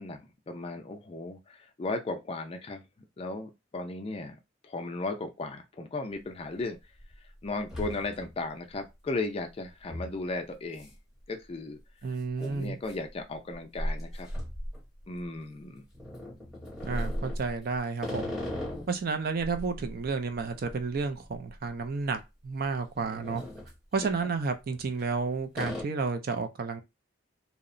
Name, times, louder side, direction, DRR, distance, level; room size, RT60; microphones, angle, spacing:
voice 1, 0.0-2.8 3.2-4.4 4.6-6.8 7.4-10.9 11.3-11.8 12.4-14.3 15.1-15.9 24.0-24.1, left 2 dB, 30° left, 0.4 m, -36 dB
sound 1, 6.1-6.2 6.7-7.2 7.4-8.5 8.8-8.9 9.9-10.1 10.8-11.0 11.2-11.3 12.3-15.4 15.9-19.0 19.4-21.8 22.0-22.2 22.7-23.8 24.6-25.2 25.5-25.8, equal, ahead, 0.8 m, -37 dB
voice 2, 12.0-12.8 16.8-18.4 18.9-23.4 23.9-26.8, right 4 dB, 50° right, 0.4 m, -31 dB
2.8 x 2.0 x 2.5 m
head